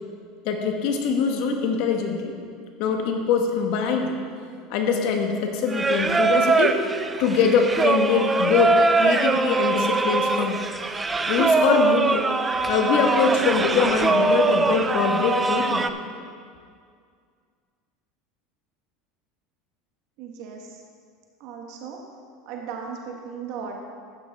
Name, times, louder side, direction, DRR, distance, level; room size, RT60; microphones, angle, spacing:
voice 1, 0.4-2.3 2.8-4.2 4.7-6.8 7.2-10.6 11.3-12.3 12.7-15.9, left 5 dB, 65° left, 3 dB, 1.2 m, -23 dB
Singing, 5.7-15.9, right 3 dB, 15° right, 0.4 m, -22 dB
voice 2, 20.2-20.8 21.4-22.0 22.4-23.8, right 6 dB, 60° right, 1 dB, 1.1 m, -36 dB
12.0 x 9.2 x 3.4 m, 2.2 s
supercardioid pair, 135°, 0 cm